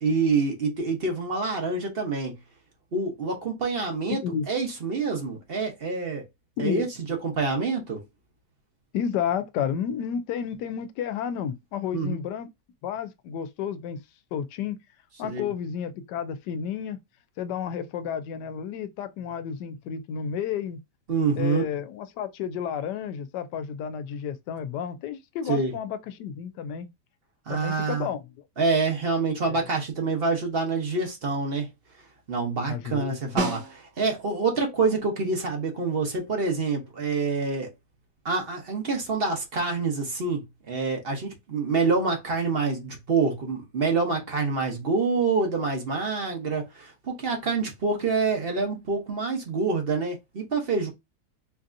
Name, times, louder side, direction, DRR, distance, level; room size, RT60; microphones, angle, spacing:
voice 1, 0.0-2.4 2.9-6.2 6.6-8.0 11.9-12.2 15.2-15.5 21.1-21.6 25.5-25.7 27.5-28.1 28.6-31.7 32.3-37.7 38.2-50.9, right 4 dB, 40° right, 1.0 m, -26 dB
voice 2, 8.9-12.5 12.8-14.0 14.3-14.8 15.2-17.0 17.4-20.8 21.4-26.9 27.5-28.3 29.5-29.7 32.7-33.5, left 8 dB, 85° left, 1.2 m, -31 dB
Snare drum, 33.4-34.3 38.7-38.8, right 3 dB, 90° right, 1.7 m, -31 dB
4.7 x 2.7 x 2.5 m
omnidirectional pair, 1.8 m